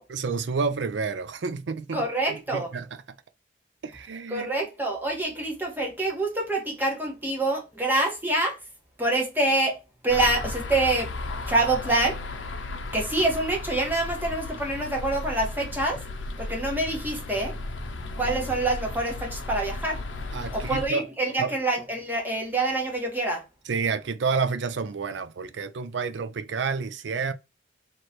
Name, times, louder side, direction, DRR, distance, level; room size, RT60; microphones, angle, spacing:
voice 1, 0.1-2.0 2.3-2.9 3.8-4.5 20.3-21.0 21.4-21.5 23.7-27.3, right 5 dB, 70° right, 0.5 m, -29 dB
voice 2, 1.9-2.7 4.3-8.6 9.0-9.8 10.0-11.1 11.5-12.2 12.9-16.0 16.4-17.5 18.2-20.0 20.5-23.4, right 2 dB, 10° right, 1.3 m, -26 dB
sound 1, 10.1-20.9, left 2 dB, 75° left, 0.6 m, -35 dB
3.2 x 2.9 x 4.3 m
head